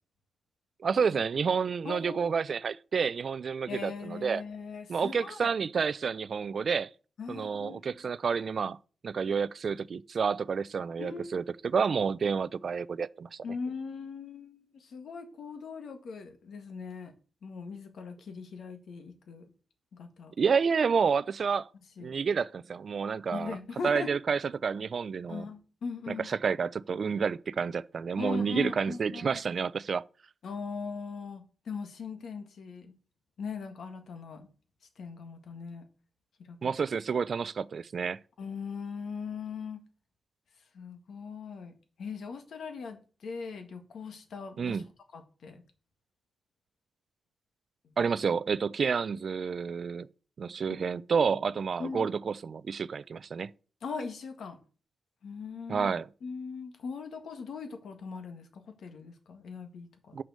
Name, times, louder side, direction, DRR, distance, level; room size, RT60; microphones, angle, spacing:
voice 1, 0.8-4.4 4.9-6.9 7.3-8.8 9.0-13.4 20.4-21.7 22.0-23.6 23.8-25.4 26.1-30.0 36.6-38.2 44.6-44.8 48.0-50.1 50.4-53.5 55.7-56.1 60.1-60.2, right 6 dB, 50° right, 0.4 m, -29 dB
voice 2, 1.9-2.2 3.7-5.5 7.2-7.8 11.0-11.4 13.4-17.1 17.4-19.5 19.9-20.4 22.0-22.2 23.3-24.1 25.3-26.3 28.2-29.4 30.4-32.9 33.4-34.5 35.0-35.9 36.4-36.7 38.4-39.8 40.7-44.8 45.1-45.6 47.8-47.9 50.7-50.8 51.8-52.1 53.8-54.6 55.2-55.9 56.2-60.2, left 5 dB, 70° left, 1.6 m, -40 dB
6.9 x 6.2 x 6.5 m
cardioid pair, 105°, 0 cm